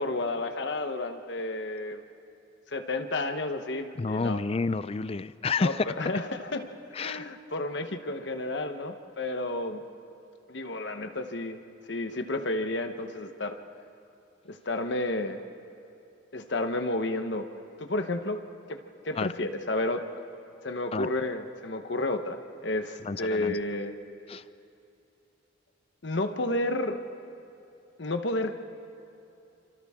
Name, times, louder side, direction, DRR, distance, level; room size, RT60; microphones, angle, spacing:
voice 1, 0.0-2.0 2.7-4.4 5.6-6.7 7.0-9.8 10.5-11.6 11.9-13.6 14.4-15.4 16.3-17.5 17.8-18.4 18.7-20.0 20.6-23.9 26.0-27.0 28.0-28.5, left 2 dB, 60° left, 7 dB, 1.1 m, -31 dB
voice 2, 4.0-5.8 6.9-7.2 19.2-19.3 20.9-21.1 23.0-23.5 24.3-24.4, left 4 dB, 30° left, 15 dB, 0.4 m, -29 dB
29.5 x 25.5 x 3.7 m, 2.7 s
head